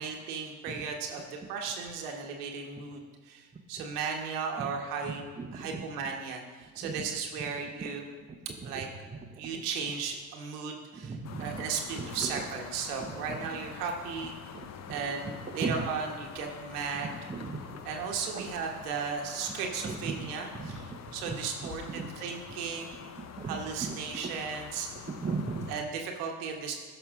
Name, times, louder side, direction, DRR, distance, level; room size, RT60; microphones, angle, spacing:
voice 1, 0.0-5.2 5.5-8.0 8.6-8.9 9.4-14.3 14.9-17.1 17.8-23.0 23.4-24.9 25.7-26.8, right 6 dB, 80° right, 2 dB, 1.4 m, -36 dB
voice 2, 5.4-5.8 6.8-7.0 7.8-7.9 8.6-8.8 9.3-9.6 11.0-11.6 11.9-12.4 13.0-13.4 14.5-14.7 15.6-15.8 17.0-17.8 18.3-18.5 19.8-20.3 20.6-20.8 21.2-21.3 21.6-21.7 21.9-22.1 23.2-24.0 25.1-25.7, right 4 dB, 15° right, 3 dB, 0.9 m, -37 dB
sound 1, 11.2-25.8, left 8 dB, 35° left, 0.7 m, -46 dB
13.5 x 5.6 x 3.7 m, 1.4 s
hypercardioid pair, 70°, 45 cm